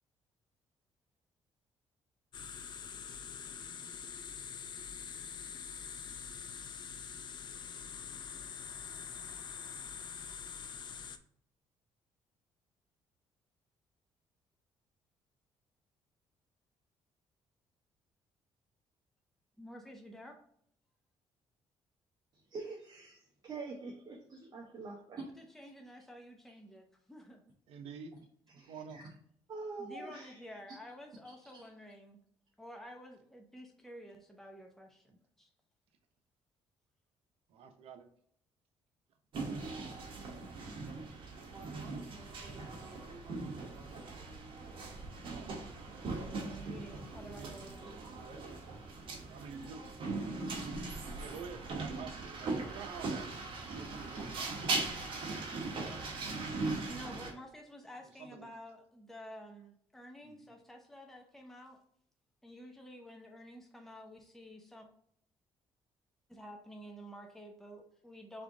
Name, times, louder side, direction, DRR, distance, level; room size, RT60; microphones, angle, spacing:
sound 1, 2.3-11.2, left 7 dB, 50° left, 0.5 m, -45 dB
voice 1, 19.6-20.4 25.4-27.4 29.8-32.2 32.6-35.1 35.4-35.5 46.5-48.1 56.9-61.8 62.4-64.9 66.3-68.4, equal, 5° left, 0.8 m, -51 dB
voice 2, 22.3-25.3 28.6-29.0 29.5-30.4 31.2-31.7, right 3 dB, 40° right, 0.9 m, -45 dB
voice 3, 27.7-28.1 28.5-29.0 37.5-38.1 45.3-45.5 47.4-47.6 49.3-49.9 51.1-54.5 55.0-55.2 58.2-58.5 60.2-60.5, right 6 dB, 75° right, 0.7 m, -48 dB
sound 2, 39.3-57.3, right 3 dB, 60° right, 1.4 m, -40 dB
3.6 x 3.4 x 3.8 m
cardioid pair, 85°, 10 cm